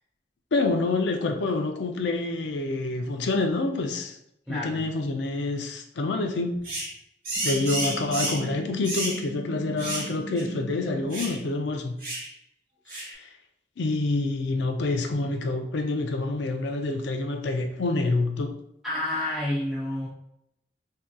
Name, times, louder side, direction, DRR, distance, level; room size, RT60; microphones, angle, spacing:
voice 1, 0.5-4.2 4.5-6.6 7.4-12.0 12.9-13.3 13.8-18.5, left 2 dB, 80° left, 0.5 m, -27 dB
voice 2, 4.5-4.8 18.8-20.1, left 1 dB, ahead, 0.5 m, -29 dB
sound 1, 6.6-6.9 7.2-8.5 8.8-9.2 9.8-10.1 10.4-10.5 11.1-11.4 12.0-12.3 12.9-13.1, right 1 dB, 50° right, 1.1 m, -31 dB
sound 2, 7.3-11.3, right 2 dB, 70° right, 0.8 m, -38 dB
3.6 x 2.7 x 2.2 m
head